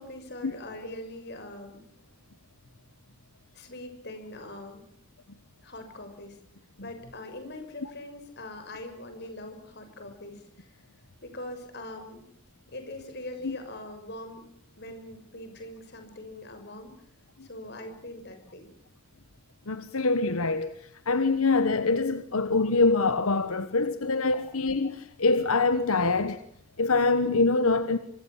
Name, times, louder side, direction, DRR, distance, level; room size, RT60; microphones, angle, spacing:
voice 1, 0.0-1.8 3.5-4.8 5.6-6.4 6.8-10.7 11.2-12.2 12.7-14.4 14.8-16.9 17.4-18.7, left 1 dB, 50° left, 6.5 m, -42 dB
voice 2, 19.7-26.4 26.8-28.0, left 3 dB, 85° left, 1.3 m, -25 dB
25.5 x 24.5 x 7.4 m
head